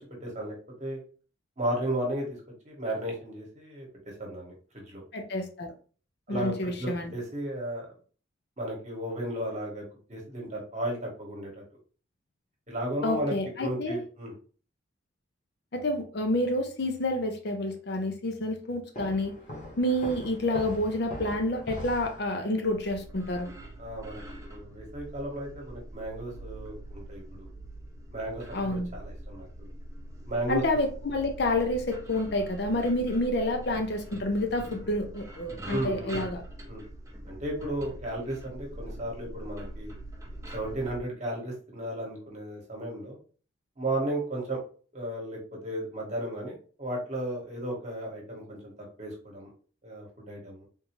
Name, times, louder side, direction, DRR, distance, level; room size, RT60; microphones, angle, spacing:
voice 1, 0.2-1.0 1.6-2.3 2.6-3.9 4.2-5.0 6.3-7.9 8.6-11.6 12.7-14.3 23.8-27.5 28.1-29.7 30.3-30.6 35.7-36.2 36.7-36.8 37.3-39.9 40.5-43.2 43.8-44.6 44.9-48.7 49.0-49.5 49.8-50.7, right 1 dB, 35° right, -2 dB, 1.1 m, -34 dB
voice 2, 5.1-5.7 6.3-7.1 13.0-14.0 15.7-19.3 19.8-23.5 28.5-28.9 30.5-36.4, left 1 dB, 55° left, 5 dB, 0.5 m, -29 dB
sound 1, 18.9-22.6, equal, 40° left, 1.0 m, -41 dB
sound 2, 22.7-41.0, right 1 dB, 15° right, 0.6 m, -43 dB
3.6 x 2.7 x 2.9 m, 0.40 s
head